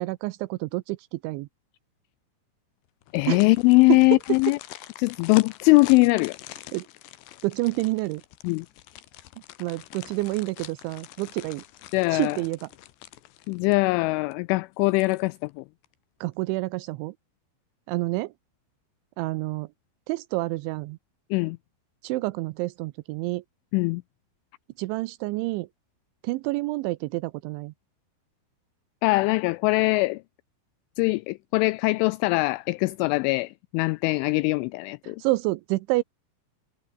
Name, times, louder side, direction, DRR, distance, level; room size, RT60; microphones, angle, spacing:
voice 1, 0.0-1.5 3.3-3.4 3.9-4.0 6.7-6.9 7.4-8.2 9.6-11.6 12.1-12.7 16.2-17.1 17.9-18.3 19.2-19.7 20.1-21.0 22.0-23.4 24.8-25.7 26.2-27.7 35.0-36.0, right 21 dB, 90° right, 2.7 m, -28 dB
sound 1, 3.0-14.0 14.3-14.4 14.8-15.5 15.8-16.0, left 14 dB, 70° left, 3.0 m, -45 dB
voice 2, 3.1-4.6 5.0-6.4 8.4-8.7 11.9-12.4 13.5-15.6 21.3-21.6 23.7-24.0 29.0-30.2 31.0-35.2, left 24 dB, 85° left, 2.7 m, -22 dB
omnidirectional pair, 6.0 m